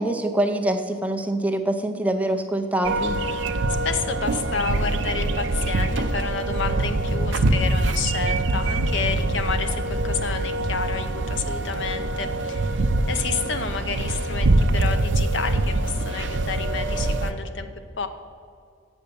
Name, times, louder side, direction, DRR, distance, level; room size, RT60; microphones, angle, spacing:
voice 1, 0.0-3.2, right 1 dB, 5° right, 5 dB, 0.4 m, -24 dB
sound 1, 2.8-17.3, right 2 dB, 75° right, 0.5 m, -24 dB
voice 2, 3.8-12.8 13.1-17.7 18.0-18.1, left 5 dB, 70° left, 8 dB, 0.7 m, -30 dB
8.0 x 6.6 x 6.8 m, 2.3 s
head